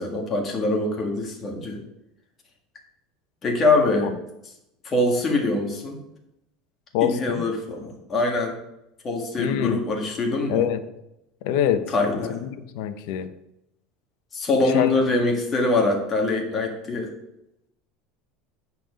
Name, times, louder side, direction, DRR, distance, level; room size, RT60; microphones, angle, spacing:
voice 1, 0.0-1.8 3.4-4.1 4.8-6.0 7.0-8.6 9.0-10.7 11.9-12.4 14.3-17.1, left 2 dB, 25° left, 1 dB, 1.8 m, -23 dB
voice 2, 6.9-7.4 9.4-9.8 10.5-10.8 11.4-11.9 12.3-13.3 14.7-14.9, left 10 dB, 65° left, 10 dB, 0.8 m, -25 dB
9.0 x 5.8 x 5.2 m, 0.85 s
cardioid pair, 160°, 0 cm